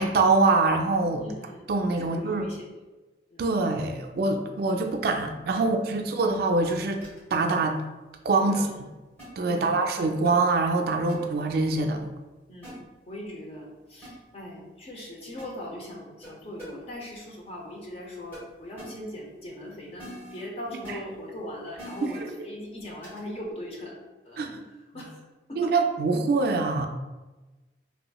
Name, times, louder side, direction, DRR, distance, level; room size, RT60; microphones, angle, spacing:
voice 1, 0.0-1.2 1.7-2.4 3.4-7.0 7.3-7.8 8.2-8.7 9.4-12.0 22.0-22.1 24.4-24.6 25.6-26.9, right 3 dB, 55° right, 4 dB, 0.3 m, -24 dB
voice 2, 1.0-1.7 2.0-2.7 3.3-3.5 5.6-5.7 8.5-8.7 9.5-9.8 12.5-25.2 25.5-25.7, left 1 dB, 35° left, -2 dB, 0.6 m, -40 dB
sound 1, 7.0-7.2 8.6-8.7 9.2-9.3 10.2-10.3 11.1-11.2 12.6-12.7 14.0-14.1 15.4-15.5 16.2-16.3 16.6-16.7 18.3-18.4 18.8-18.9 20.0-20.4 20.8-20.9 21.8-22.2 23.0-23.2, equal, 10° left, 1.3 m, -43 dB
3.3 x 2.9 x 2.3 m, 1.1 s
head